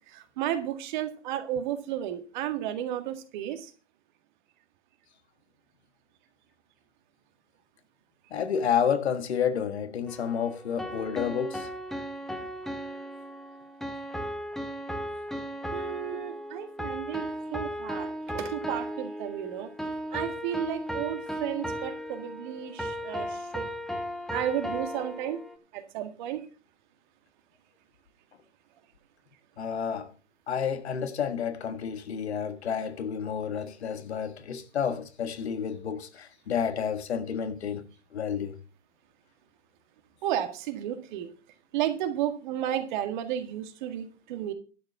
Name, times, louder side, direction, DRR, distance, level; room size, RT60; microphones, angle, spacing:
voice 1, 0.1-3.7 15.7-19.7 20.1-23.7 24.3-25.4 25.7-26.5 40.2-41.3 41.7-44.5, right 11 dB, 40° right, 1.9 m, -33 dB
voice 2, 8.3-11.7 29.6-30.1 30.5-37.9 38.1-38.6, left 7 dB, 65° left, 1.5 m, -30 dB
sound 1, 10.1-25.6, equal, ahead, 0.9 m, -36 dB
11.5 x 6.7 x 6.0 m
hypercardioid pair, 125°, 35 cm